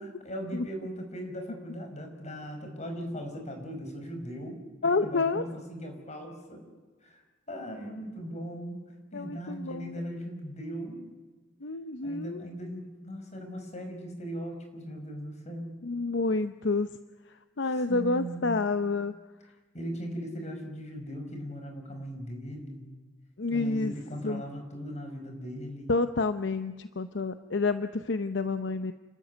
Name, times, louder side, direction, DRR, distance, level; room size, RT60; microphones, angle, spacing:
voice 1, 0.0-6.7 7.0-7.2 7.5-11.0 12.0-15.7 17.7-18.5 19.7-22.9 23.5-25.9, equal, 35° left, 4 dB, 5.4 m, -39 dB
voice 2, 4.8-5.4 9.1-9.9 11.6-12.4 15.8-16.9 17.6-19.1 23.4-23.9 24.2-24.4 25.9-28.9, left 3 dB, 65° left, 10 dB, 0.8 m, -29 dB
30.0 x 13.0 x 9.6 m, 1.3 s
head